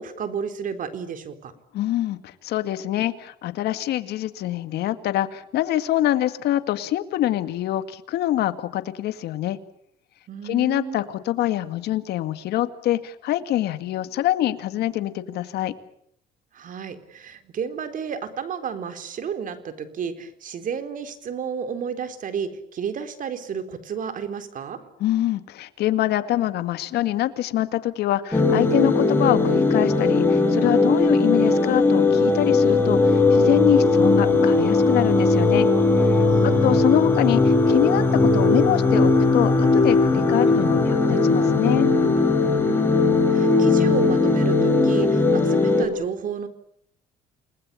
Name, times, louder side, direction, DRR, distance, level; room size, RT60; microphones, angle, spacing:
voice 1, 0.0-1.5 10.3-11.0 16.5-24.8 36.3-36.8 42.6-46.5, right 7 dB, 50° right, 9 dB, 4.1 m, -32 dB
voice 2, 1.7-9.6 10.4-15.7 25.0-35.7 36.0-41.9, left 13 dB, 75° left, 10 dB, 2.1 m, -25 dB
sound 1, 28.3-45.9, left 3 dB, 10° left, 6.3 m, -18 dB
29.5 x 20.0 x 8.6 m, 0.70 s
cardioid pair, 110°, 17 cm